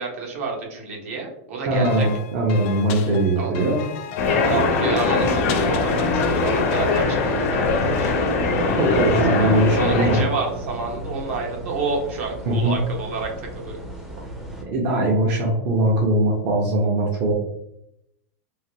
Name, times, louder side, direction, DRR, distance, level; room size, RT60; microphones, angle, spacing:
voice 1, 0.0-2.1 3.4-3.5 4.4-8.2 8.9-9.0 9.4-13.8, right 4 dB, 65° right, 0 dB, 1.0 m, -29 dB
voice 2, 1.7-3.8 8.5-10.2 12.5-12.8 14.6-17.3, right 1 dB, 45° right, -2 dB, 0.6 m, -21 dB
sound 1, 1.8-7.0, left 7 dB, 45° left, 0.4 m, -31 dB
sound 2, 4.2-10.2, left 3 dB, 70° left, 0.7 m, -21 dB
sound 3, 5.4-14.6, equal, 5° right, 0.5 m, -36 dB
3.3 x 2.2 x 2.8 m, 0.78 s
supercardioid pair, 155°, 8 cm